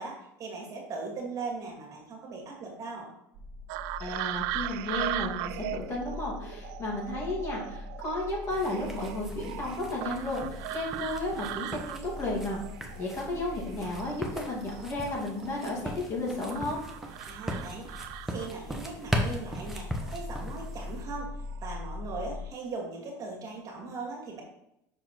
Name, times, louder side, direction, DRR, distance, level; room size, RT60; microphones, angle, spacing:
voice 1, 0.0-3.1 17.3-21.3 21.6-24.4, right 3 dB, 40° right, -1 dB, 2.2 m, -39 dB
sound 1, 3.3-22.5, left 2 dB, 55° right, 1.0 m, -43 dB
sound 2, 3.7-13.7 14.0-16.0 16.5-18.8 20.0-20.2 20.7-21.1 21.4-21.7, right 14 dB, 75° right, 0.3 m, -39 dB
voice 2, 4.0-12.6 12.9-16.8, left 2 dB, 30° left, -3 dB, 2.8 m, -33 dB
sound 3, 8.5-21.0, equal, 5° right, 1.2 m, -39 dB
6.1 x 5.0 x 4.7 m, 0.81 s
supercardioid pair, 120°, 9 cm